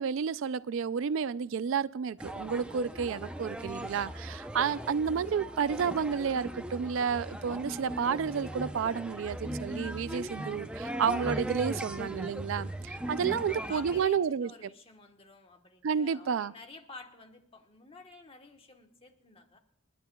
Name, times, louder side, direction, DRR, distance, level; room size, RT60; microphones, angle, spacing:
voice 1, 0.0-14.5 15.8-16.5, right 6 dB, 65° right, 17 dB, 0.4 m, -31 dB
sound 1, 2.2-14.0, equal, 5° right, 0.6 m, -38 dB
voice 2, 13.3-19.6, left 3 dB, 25° left, 4 dB, 1.2 m, -51 dB
28.0 x 11.0 x 2.3 m, 0.72 s
head